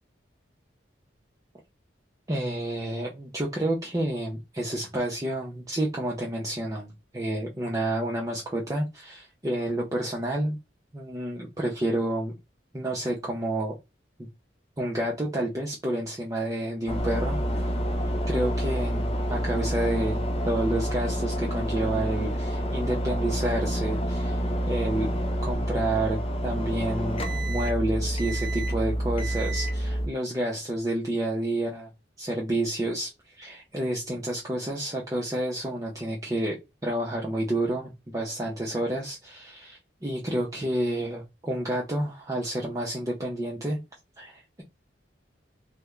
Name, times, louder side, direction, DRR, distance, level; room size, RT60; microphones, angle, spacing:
voice 1, 2.3-10.6 10.9-12.3 12.7-13.7 14.8-17.4 18.3-25.1 25.4-31.9 32.2-43.8 44.2-44.6, right 1 dB, 20° right, -2 dB, 0.6 m, -29 dB
sound 1, 16.9-30.1, equal, 30° left, 0.6 m, -28 dB
3.3 x 2.1 x 3.4 m, 0.24 s
head